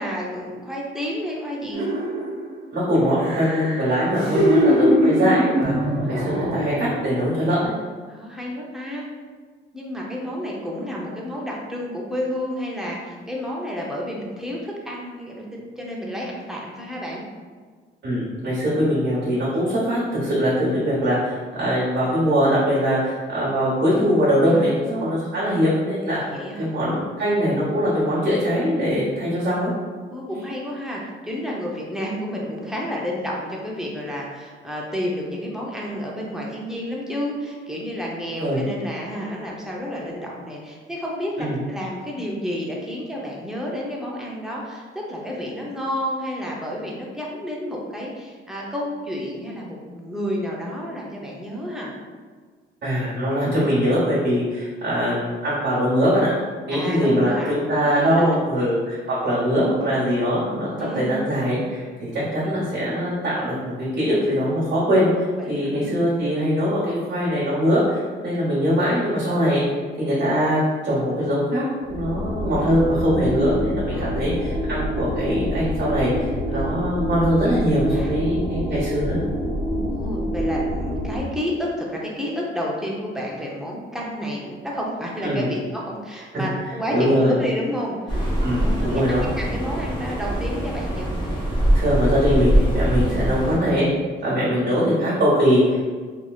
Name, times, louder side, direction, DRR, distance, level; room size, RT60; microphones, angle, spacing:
voice 1, 0.0-1.9 4.2-4.4 6.0-6.7 8.1-9.1 9.7-17.2 24.5-24.7 26.1-26.7 30.1-51.9 56.7-57.6 57.8-58.4 60.8-61.2 65.4-66.0 72.5-72.8 73.9-74.1 76.5-76.7 77.4-77.5 77.9-78.5 79.7-91.1 93.0-93.2 94.2-94.7, equal, ahead, -4 dB, 0.7 m, -31 dB
Insane Women Laughter, 1.7-2.5 2.9-7.1 7.5-7.6, equal, 85° right, 0.9 m, -22 dB
voice 2, 2.7-5.7 6.1-7.7 18.0-29.7 38.4-38.6 41.4-41.6 52.8-56.3 56.6-69.6 70.0-79.2 85.2-85.5 86.9-87.3 88.4-89.3 91.7-93.9 94.2-95.8, equal, 65° right, -10 dB, 1.1 m, -22 dB
sound 1, 71.8-81.2, equal, 45° right, 0.8 m, -26 dB
sound 2, 88.1-93.6, right 1 dB, 25° left, 1.0 m, -23 dB
2.9 x 2.8 x 2.3 m, 1.5 s
cardioid pair, 90°, 20 cm